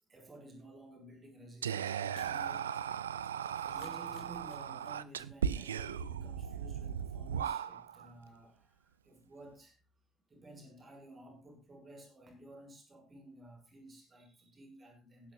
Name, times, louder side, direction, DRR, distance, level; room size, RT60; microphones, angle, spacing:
voice 1, 0.1-2.7 3.6-9.8 10.3-15.3, right 1 dB, 30° right, 6.6 m, -54 dB
Whispering, 1.6-8.1, right 8 dB, 75° right, 0.6 m, -37 dB
Shatter, 2.2-5.2 5.5-5.6 5.9-6.0, left 7 dB, 60° left, 3.5 m, -60 dB
20.5 x 11.5 x 2.5 m
figure-of-eight pair, 55°, 0 cm